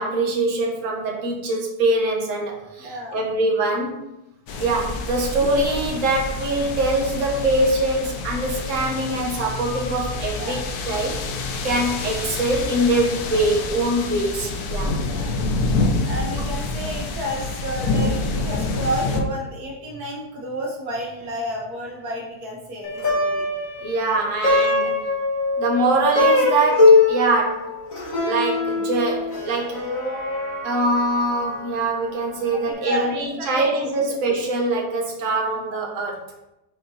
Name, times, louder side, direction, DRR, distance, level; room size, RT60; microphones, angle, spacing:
voice 1, 0.0-4.1 4.6-10.6 10.9-11.2 11.6-14.9 23.8-24.9 25.6-27.7 28.2-29.8 30.6-36.2, right 2 dB, 55° right, -2 dB, 1.5 m, -23 dB
voice 2, 2.8-3.2 10.4-10.7 14.8-15.4 16.1-23.4 32.6-34.2, equal, 70° right, -1 dB, 1.5 m, -31 dB
sound 1, 4.5-19.2, left 3 dB, 75° left, 1.3 m, -27 dB
Plucked string instrument, 22.8-32.3, left 3 dB, 55° left, 2.1 m, -22 dB
6.6 x 4.1 x 4.1 m, 0.93 s
omnidirectional pair, 1.7 m